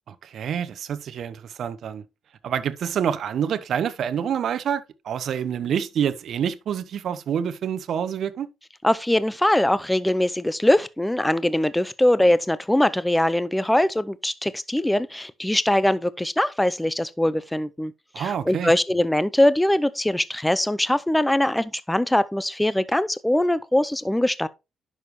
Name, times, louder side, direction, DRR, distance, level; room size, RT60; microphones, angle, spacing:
voice 1, 0.1-2.0 2.4-8.5 18.1-18.7, right 8 dB, 65° right, 0.9 m, -27 dB
voice 2, 8.8-24.5, left 1 dB, 5° left, 0.5 m, -22 dB
10.5 x 6.5 x 3.1 m
cardioid pair, 90°, 0 cm